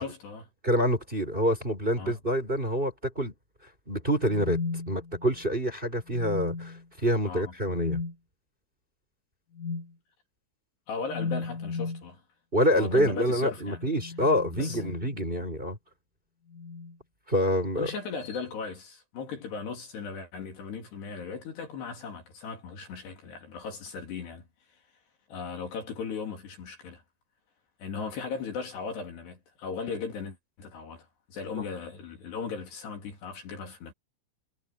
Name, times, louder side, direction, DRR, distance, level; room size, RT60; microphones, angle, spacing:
voice 1, 0.0-0.4 2.0-2.2 7.2-7.5 10.9-12.2 12.7-13.8 14.6-14.8 15.4-15.5 17.8-24.5 25.3-27.0 27.8-33.9, left 5 dB, 60° left, 5.0 m, -37 dB
voice 2, 0.6-3.3 3.9-4.6 4.9-8.0 12.5-15.8 17.3-17.9 31.5-31.6, equal, 10° right, 5.3 m, -27 dB
sound 1, 4.1-5.5 6.1-6.9 7.7-8.1 9.6-9.9 11.1-12.1 13.6-15.4 16.5-17.0 18.2-18.5, left 4 dB, 80° left, 10.5 m, -36 dB
omnidirectional pair, 5.8 m